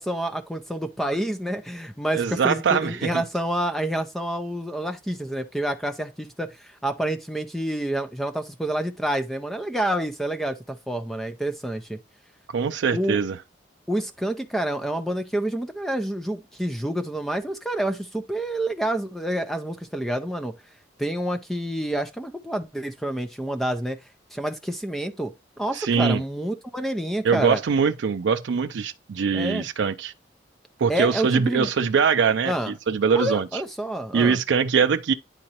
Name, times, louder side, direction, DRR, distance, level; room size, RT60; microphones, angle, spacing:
voice 1, 0.0-12.0 12.9-13.2 13.9-20.5 21.0-24.0 24.3-27.6 29.3-29.7 30.9-31.7 32.5-32.7 33.1-34.4, right 1 dB, ahead, 0.5 m, -28 dB
voice 2, 2.1-3.2 12.5-13.4 25.7-26.2 27.2-30.1 30.8-33.5 34.1-35.1, right 6 dB, 80° right, 0.4 m, -22 dB
9.7 x 3.9 x 2.8 m
head